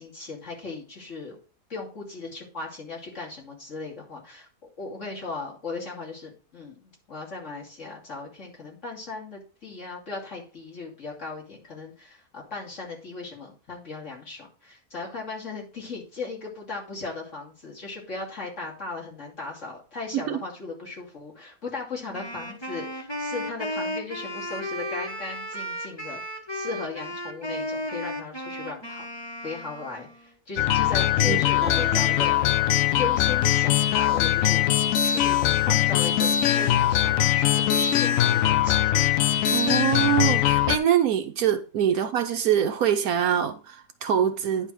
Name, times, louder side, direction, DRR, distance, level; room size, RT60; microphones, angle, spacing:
voice 1, 0.0-1.4 1.7-4.5 4.8-26.2 26.5-29.1 29.4-32.5 33.0-33.7 34.0-34.6 35.0-38.9, left 3 dB, 45° left, 3.0 m, -37 dB
Wind instrument woodwind instrument, 22.1-30.3, equal, 15° left, 1.3 m, -34 dB
sound 1, 30.6-40.8, left 11 dB, 70° left, 0.8 m, -21 dB
Guitar, 31.6-37.3, right 4 dB, 25° right, 1.6 m, -43 dB
voice 2, 39.5-44.7, right 9 dB, 70° right, 1.1 m, -24 dB
9.9 x 3.6 x 6.2 m
omnidirectional pair, 1.8 m